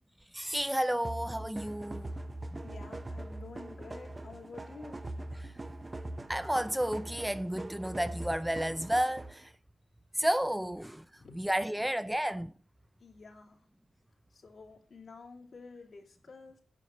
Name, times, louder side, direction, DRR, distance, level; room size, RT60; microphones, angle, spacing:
voice 1, 0.3-2.1 2.5-2.6 6.3-9.5 10.1-11.0 11.4-12.5, equal, 5° right, 0.6 m, -31 dB
sound 1, 1.0-9.5, right 1 dB, 30° right, 0.9 m, -42 dB
voice 2, 2.6-5.0 11.1-11.4 13.0-13.6 14.3-16.6, left 4 dB, 65° left, 3.4 m, -50 dB
9.9 x 5.9 x 7.5 m
cardioid pair, 60°, 0 cm